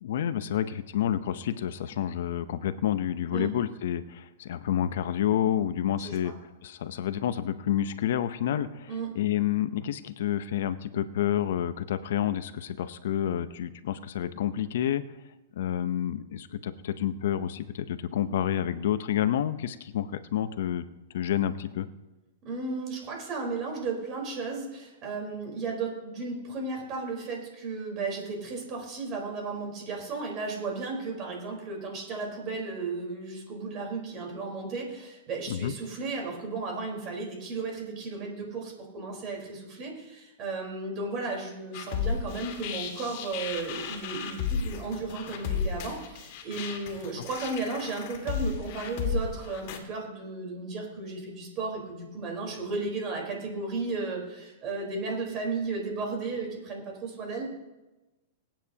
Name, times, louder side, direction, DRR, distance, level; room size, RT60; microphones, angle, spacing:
voice 1, 0.0-6.3 6.6-15.0 15.6-20.8 21.1-21.9 35.5-35.7 47.2-47.3, left 10 dB, 70° left, 12 dB, 0.7 m, -29 dB
voice 2, 6.0-6.3 8.9-9.1 22.4-57.5, right 3 dB, 35° right, 0 dB, 4.2 m, -34 dB
sound 1, 41.7-49.8, left 6 dB, 50° left, 2.1 m, -34 dB
23.0 x 9.0 x 2.9 m, 1.1 s
hypercardioid pair, 145°, 0 cm